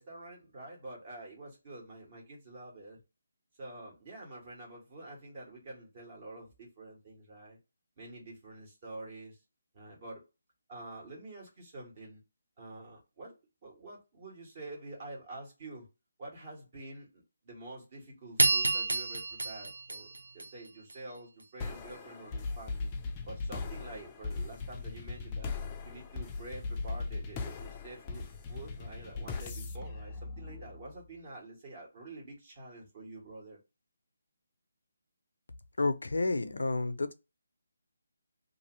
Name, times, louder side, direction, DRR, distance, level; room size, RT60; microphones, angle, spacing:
voice 1, 0.0-3.0 3.6-7.6 8.0-9.4 9.7-10.2 10.7-12.2 12.6-13.3 13.6-15.9 16.2-22.9 23.2-25.5 25.8-33.6, right 2 dB, 40° right, 1.5 m, -47 dB
sound 1, 18.4-20.9, right 2 dB, 85° right, 0.7 m, -29 dB
sound 2, 21.6-31.0, left 4 dB, 20° left, 0.4 m, -39 dB
voice 2, 35.8-37.1, left 3 dB, 75° left, 0.5 m, -30 dB
2.7 x 2.5 x 3.0 m
figure-of-eight pair, 150°, 0 cm